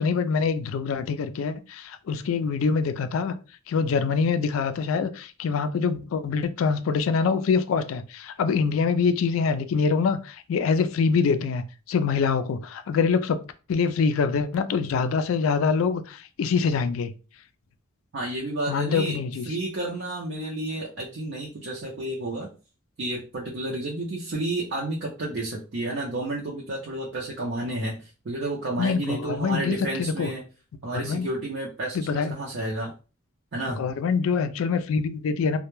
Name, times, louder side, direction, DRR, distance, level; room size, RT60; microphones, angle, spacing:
voice 1, 0.0-3.3 3.7-13.4 13.7-17.1 18.7-19.5 28.8-30.3 30.9-31.3 31.9-32.3 33.8-35.6, left 5 dB, 70° left, 0.3 m, -25 dB
voice 2, 18.1-19.2 19.5-22.5 23.0-30.4 30.8-32.9 33.5-33.8, right 2 dB, 55° right, 0.5 m, -31 dB
2.2 x 2.1 x 3.0 m
head